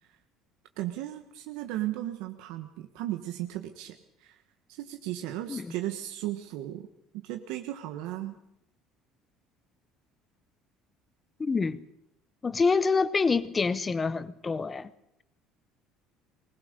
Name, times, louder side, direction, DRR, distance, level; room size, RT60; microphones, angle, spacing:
voice 1, 0.8-3.9 4.2-4.4 4.7-6.9 7.2-8.3, right 14 dB, 80° right, 1.3 m, -35 dB
voice 2, 11.4-11.8 12.4-14.9, left 4 dB, 15° left, 0.7 m, -26 dB
20.5 x 19.0 x 6.7 m
cardioid pair, 170°, 0 cm